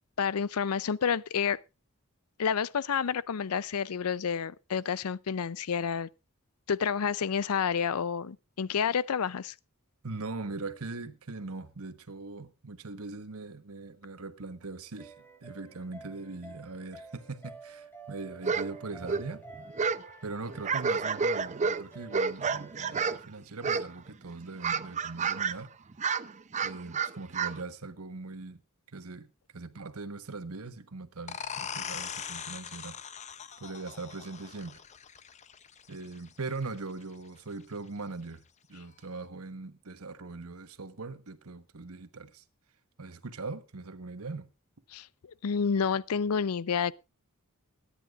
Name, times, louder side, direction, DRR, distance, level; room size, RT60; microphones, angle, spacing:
voice 1, 0.2-1.6 2.4-6.1 6.7-9.5 44.9-45.1 45.4-46.9, left 6 dB, 85° left, 0.5 m, -29 dB
voice 2, 10.0-15.1 15.4-19.4 20.2-25.7 26.6-28.6 28.9-33.0 33.6-34.8 35.9-38.4 38.7-42.4 43.0-44.5, right 3 dB, 75° right, 1.2 m, -41 dB
sound 1, 15.0-23.2, right 3 dB, 10° left, 1.6 m, -50 dB
sound 2, 18.4-18.7 18.9-20.1 20.4-23.3 23.6-24.1 24.4-25.6 25.9-27.6, right 5 dB, 35° right, 0.6 m, -30 dB
sound 3, 31.3-36.7, left 7 dB, 30° left, 0.6 m, -41 dB
23.5 x 10.0 x 2.5 m
head